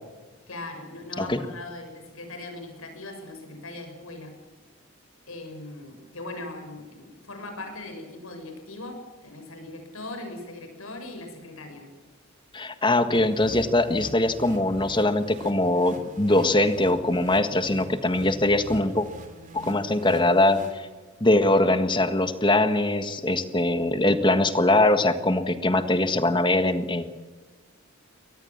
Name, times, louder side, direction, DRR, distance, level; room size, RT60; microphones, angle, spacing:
voice 1, 0.5-4.3 5.3-11.9 13.0-13.2, left 2 dB, 85° left, 5 dB, 6.8 m, -40 dB
voice 2, 12.5-19.1 19.5-20.9 21.2-27.0, left 2 dB, 20° left, 10 dB, 1.6 m, -22 dB
sound 1, 13.1-21.3, right 1 dB, 40° right, 2.8 m, -44 dB
23.5 x 19.5 x 7.4 m, 1.3 s
head